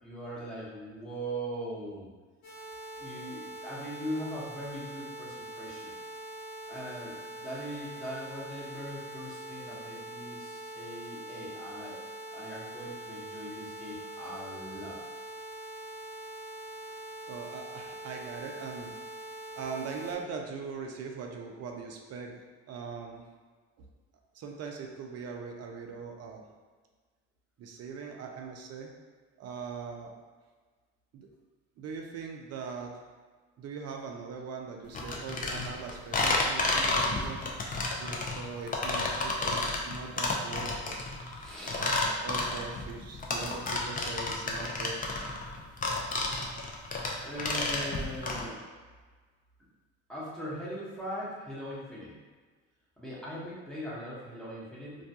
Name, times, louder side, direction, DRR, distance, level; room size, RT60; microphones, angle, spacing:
voice 1, 0.0-2.1 3.0-6.0 6.7-12.0 12.3-15.0 41.4-41.9 47.2-48.6 50.1-52.2 53.0-55.0, equal, ahead, -8 dB, 1.0 m, -40 dB
sound 1, 2.4-20.2, right 1 dB, 60° left, 0.8 m, -43 dB
voice 2, 17.3-19.0 19.6-22.4 22.7-23.2 23.8-23.9 24.3-26.4 27.6-28.9 29.4-30.1 31.1-31.3 31.8-32.9 33.6-37.4 38.0-41.0 41.7-45.0, right 5 dB, 50° right, 2 dB, 0.5 m, -41 dB
sound 2, 34.9-48.4, left 2 dB, 25° left, 0.5 m, -31 dB
2.3 x 2.2 x 2.7 m, 1.4 s
hypercardioid pair, 60°, 33 cm